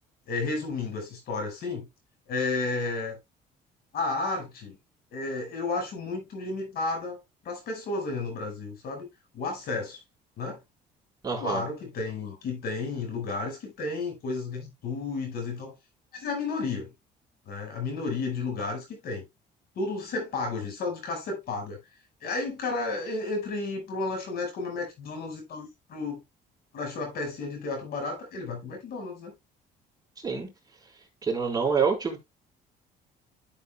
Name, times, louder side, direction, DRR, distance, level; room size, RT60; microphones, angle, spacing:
voice 1, 0.3-1.9 2.3-3.2 3.9-4.8 5.1-7.2 7.4-9.1 9.3-10.0 10.4-10.6 11.4-15.7 16.1-16.9 17.5-19.2 19.7-21.8 22.2-26.2 26.7-29.3, left 3 dB, 65° left, 5.2 m, -32 dB
voice 2, 11.2-11.6 30.2-30.5 31.2-32.2, right 5 dB, 20° right, 4.0 m, -26 dB
12.5 x 7.1 x 2.3 m
cardioid pair, 110°, 17 cm